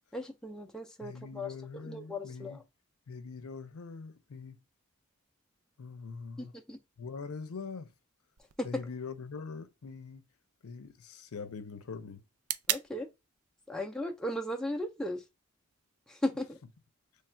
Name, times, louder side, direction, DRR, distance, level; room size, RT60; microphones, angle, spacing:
voice 1, 0.1-2.6 6.4-6.8 8.6-8.7 12.7-13.1 13.7-15.2 16.1-16.6, left 1 dB, 5° left, 0.4 m, -36 dB
voice 2, 1.0-2.6 3.1-4.6 5.8-6.5 7.0-7.9 8.6-10.3 10.6-12.2, left 5 dB, 80° left, 0.6 m, -43 dB
sound 1, 8.4-16.4, right 11 dB, 80° right, 0.4 m, -43 dB
3.2 x 2.3 x 4.3 m
head